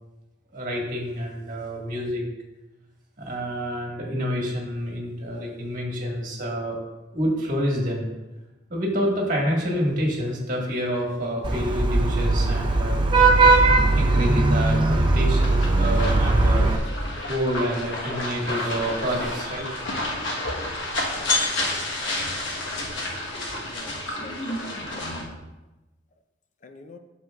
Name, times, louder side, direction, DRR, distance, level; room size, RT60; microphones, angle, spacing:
voice 1, 0.5-2.2 3.2-6.8 7.1-8.1 8.7-13.0 13.9-19.7, equal, 45° right, -1 dB, 1.6 m, -28 dB
Vehicle horn car horn honking / Traffic noise roadway noise, 11.4-16.8, right 2 dB, 25° right, 0.6 m, -19 dB
sound 1, 15.4-25.2, left 2 dB, 75° left, 1.2 m, -30 dB
voice 2, 23.6-25.1 26.6-27.0, left 2 dB, 40° left, 6 dB, 0.6 m, -45 dB
9.3 x 6.7 x 2.4 m, 1.1 s
head